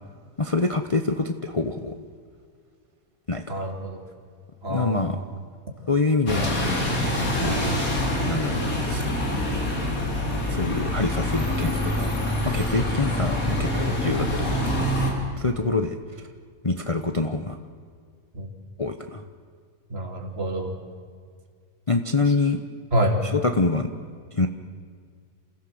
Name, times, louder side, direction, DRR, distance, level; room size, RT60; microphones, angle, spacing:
voice 1, 0.4-2.0 3.3-3.7 4.7-5.2 5.9-6.6 7.4-7.7 8.2-8.6 8.9-9.0 10.5-12.1 12.4-14.9 15.4-16.0 16.6-17.6 18.8-19.2 21.9-22.6 23.2-23.9 24.3-24.5, left 3 dB, 25° left, 6 dB, 0.9 m, -25 dB
voice 2, 3.5-4.0 4.6-5.3 7.4-7.6 18.3-18.5 19.9-20.7 22.9-23.2, equal, 40° right, 2 dB, 3.1 m, -27 dB
Bus, 6.3-15.1, left 1 dB, 70° left, 4.0 m, -25 dB
28.5 x 16.0 x 7.8 m, 2.1 s
omnidirectional pair, 1.5 m